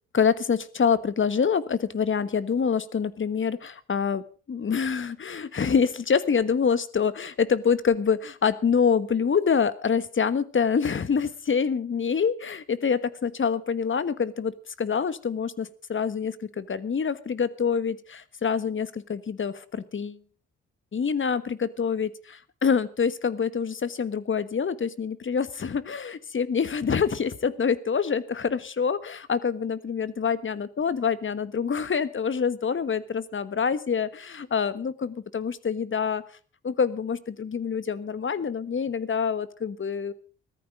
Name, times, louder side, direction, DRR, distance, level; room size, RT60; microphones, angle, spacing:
voice 1, 0.1-20.2 20.9-36.2 36.6-40.1, left 6 dB, 40° left, 15 dB, 1.4 m, -26 dB
16.0 x 13.5 x 5.0 m, 0.39 s
hypercardioid pair, 50°, 30 cm